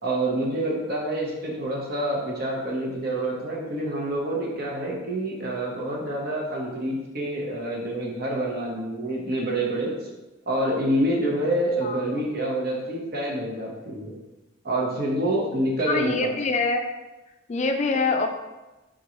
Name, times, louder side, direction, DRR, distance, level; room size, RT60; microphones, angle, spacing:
voice 1, 0.0-9.9 10.5-14.2 14.6-16.3, right 1 dB, 50° right, -2 dB, 0.9 m, -27 dB
voice 2, 15.9-16.8 17.5-18.3, left 3 dB, 35° left, 5 dB, 0.4 m, -24 dB
3.8 x 3.7 x 3.0 m, 1.1 s
head